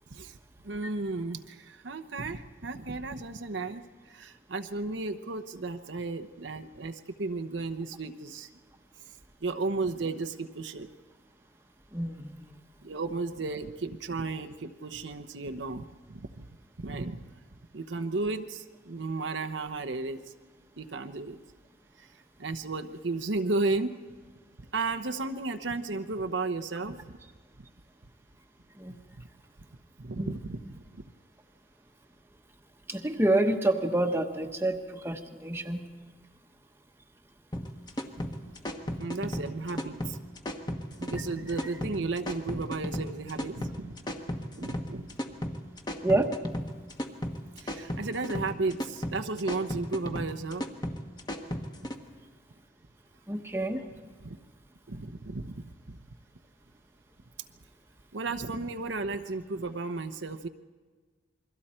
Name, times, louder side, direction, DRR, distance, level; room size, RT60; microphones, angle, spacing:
voice 1, 0.6-8.5 9.4-10.9 12.8-16.5 16.8-17.2 17.7-20.2 20.8-21.4 22.0-22.1 22.4-23.9 24.7-27.2 29.2-29.3 30.0-31.0 39.0-40.2 41.0-44.0 44.5-45.2 47.6-50.7 54.2-54.4 54.9-56.0 58.1-60.5, right 3 dB, 80° right, 8 dB, 0.9 m, -34 dB
voice 2, 11.9-12.6 28.7-29.0 30.2-30.4 32.9-35.8 46.0-46.3 53.3-53.9, right 1 dB, 15° right, 4 dB, 1.1 m, -28 dB
sound 1, 37.5-52.0, equal, 20° left, 1.2 m, -35 dB
28.5 x 22.5 x 4.4 m, 1.4 s
head